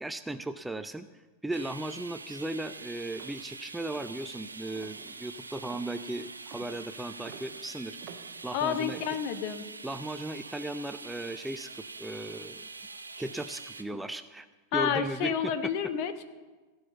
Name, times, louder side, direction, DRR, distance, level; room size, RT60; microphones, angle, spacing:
voice 1, 0.0-1.1 1.4-8.0 8.4-9.0 9.8-12.7 13.2-14.5 14.7-15.7, right 2 dB, 5° right, 10 dB, 0.4 m, -36 dB
sound 1, 1.5-13.8, right 3 dB, 80° right, 0.7 m, -45 dB
sound 2, 3.1-9.6, right 7 dB, 40° right, 1.0 m, -52 dB
voice 2, 8.5-9.6 14.7-16.2, left 8 dB, 45° left, 10 dB, 1.0 m, -30 dB
16.0 x 5.7 x 8.0 m, 1.3 s
figure-of-eight pair, 90°, 0 cm